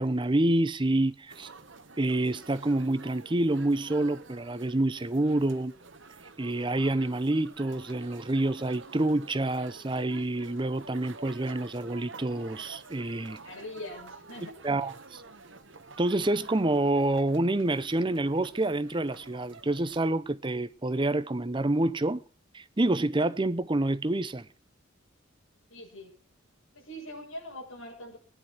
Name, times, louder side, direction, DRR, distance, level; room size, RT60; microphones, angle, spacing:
voice 1, 0.0-1.5 2.0-5.7 6.4-13.4 14.6-15.2 16.0-22.2 22.5-24.5, right 2 dB, 25° right, 0.6 m, -27 dB
sound 1, 1.3-20.1, right 3 dB, 60° right, 1.4 m, -50 dB
voice 2, 13.4-14.6 25.7-26.2 26.7-28.2, left 1 dB, 85° left, 6.8 m, -42 dB
17.5 x 10.5 x 5.9 m
head